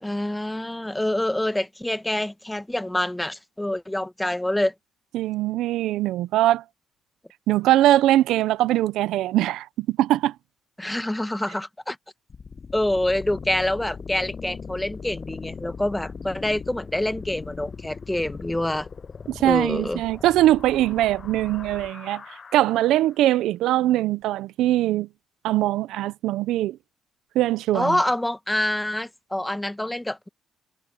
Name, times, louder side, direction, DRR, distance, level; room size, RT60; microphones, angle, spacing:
voice 1, 0.0-4.7 10.8-12.0 12.7-18.9 19.4-20.0 27.7-30.3, left 1 dB, 10° left, 1.2 m, -26 dB
voice 2, 5.1-6.6 7.5-10.3 19.3-22.2 22.5-25.1 25.4-26.8 27.3-28.0, right 14 dB, 90° right, 0.5 m, -21 dB
sound 1, 12.3-23.3, left 5 dB, 40° left, 7.8 m, -39 dB
cardioid pair, 90°, 0 cm